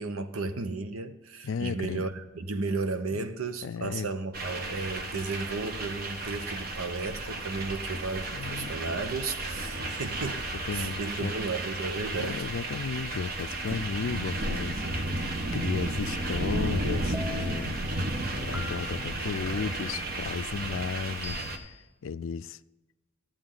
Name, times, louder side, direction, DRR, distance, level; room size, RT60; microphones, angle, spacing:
voice 1, 0.0-10.4 10.7-12.5, right 3 dB, 85° right, 0.9 m, -34 dB
voice 2, 1.4-2.1 3.1-3.2 3.6-4.1 8.3-8.8 10.7-11.4 12.1-15.2 15.5-17.8 18.3-21.8 22.0-22.6, left 5 dB, 70° left, 0.4 m, -34 dB
sound 1, 4.3-21.6, right 2 dB, 45° right, 1.0 m, -33 dB
sound 2, 17.1-17.7 18.5-19.1 19.9-20.5 21.2-21.8, left 1 dB, 5° right, 0.7 m, -41 dB
12.5 x 8.7 x 3.8 m
head